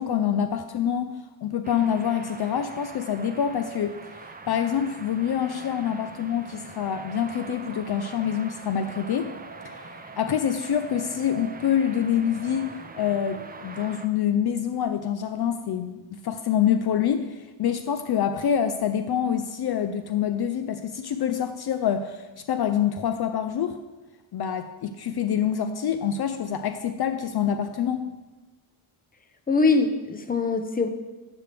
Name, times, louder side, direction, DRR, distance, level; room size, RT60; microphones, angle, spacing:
voice 1, 0.0-9.3 9.6-9.9 10.2-12.7 12.9-23.8 24.3-28.1, left 8 dB, 55° left, 9 dB, 0.6 m, -26 dB
sound 1, 1.6-14.1, right 4 dB, 20° right, 0.7 m, -43 dB
voice 2, 29.5-30.9, left 3 dB, 20° left, 8 dB, 0.7 m, -22 dB
9.5 x 7.9 x 3.3 m, 1.1 s
cardioid pair, 85°, 48 cm